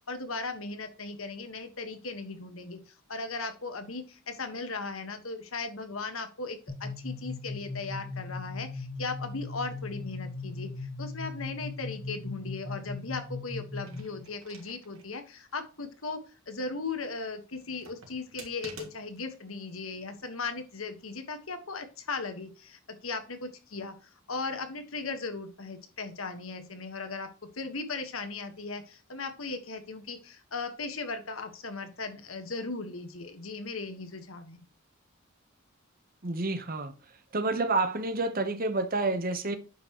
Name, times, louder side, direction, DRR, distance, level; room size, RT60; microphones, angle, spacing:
voice 1, 0.1-16.2 16.5-23.9 24.3-27.3 27.5-34.6, left 3 dB, 85° left, 1.6 m, -37 dB
sound 1, 6.7-14.2, left 3 dB, 25° left, 1.8 m, -38 dB
sound 2, 13.7-15.1 15.5-15.6 17.5-19.3 20.2-20.7, right 4 dB, 90° right, 2.6 m, -50 dB
voice 2, 36.2-36.9 37.3-39.6, right 3 dB, 45° right, 1.0 m, -29 dB
9.1 x 5.9 x 3.1 m
head